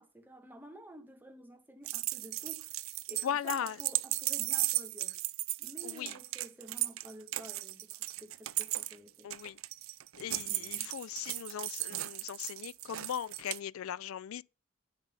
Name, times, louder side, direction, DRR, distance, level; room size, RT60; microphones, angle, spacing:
voice 1, 0.0-2.8 3.1-5.2 5.6-9.3 10.4-10.9, right 1 dB, 10° right, 1.4 m, -51 dB
sound 1, 1.8-13.6, right 18 dB, 80° right, 0.4 m, -36 dB
voice 2, 3.2-3.8 5.8-6.1 9.2-9.6 10.2-14.4, left 9 dB, 90° left, 0.4 m, -38 dB
9.6 x 5.2 x 5.6 m
head